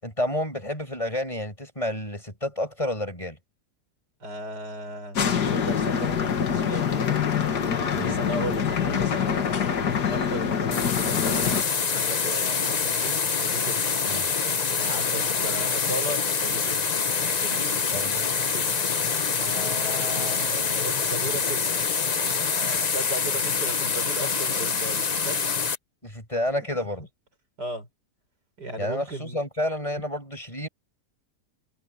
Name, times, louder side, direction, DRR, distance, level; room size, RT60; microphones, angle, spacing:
voice 1, 0.0-3.4 7.9-8.2 14.1-14.3 17.9-18.3 26.0-27.0 28.8-30.7, left 1 dB, 20° left, 7.4 m, -30 dB
voice 2, 4.2-5.2 5.5-7.2 8.0-11.5 11.9-13.7 14.8-16.8 17.3-17.8 18.4-18.8 19.4-21.8 22.4-25.4 26.7-26.9 27.6-27.9 28.6-29.4, right 2 dB, 80° right, 6.5 m, -36 dB
sound 1, 5.2-11.6, left 7 dB, 80° left, 2.2 m, -25 dB
sound 2, 10.7-25.8, left 5 dB, 35° left, 0.7 m, -26 dB
omnidirectional pair, 1.8 m